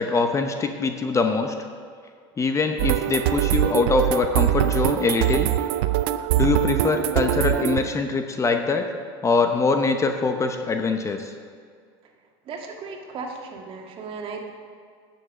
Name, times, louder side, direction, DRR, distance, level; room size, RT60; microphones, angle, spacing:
voice 1, 0.0-1.5 2.4-5.5 6.4-8.9 9.2-11.3, left 4 dB, 25° left, 6 dB, 0.8 m, -23 dB
sound 1, 2.8-7.8, right 13 dB, 80° right, 0.5 m, -23 dB
voice 2, 12.5-14.5, right 4 dB, 50° right, 2 dB, 1.8 m, -36 dB
9.8 x 7.2 x 6.2 m, 2.1 s
supercardioid pair, 110°, 12 cm